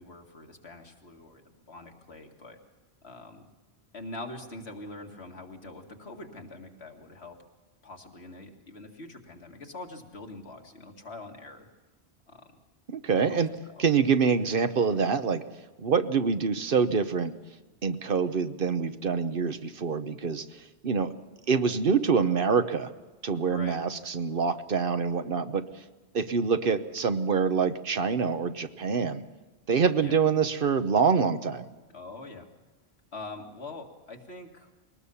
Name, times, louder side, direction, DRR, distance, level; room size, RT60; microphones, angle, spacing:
voice 1, 0.0-2.6 3.0-3.5 3.9-7.4 7.8-11.7 12.3-12.4 13.2-13.4 13.7-13.8 23.4-23.8 30.0-30.1 31.9-32.5 33.1-34.7, left 2 dB, 80° left, 2 dB, 2.3 m, -44 dB
voice 2, 12.9-15.4 15.8-17.4 17.8-21.1 21.5-22.9 23.2-25.7 26.1-29.2 29.7-31.7, right 5 dB, 60° right, 10 dB, 1.1 m, -26 dB
22.0 x 19.0 x 7.0 m, 1.2 s
omnidirectional pair, 1.1 m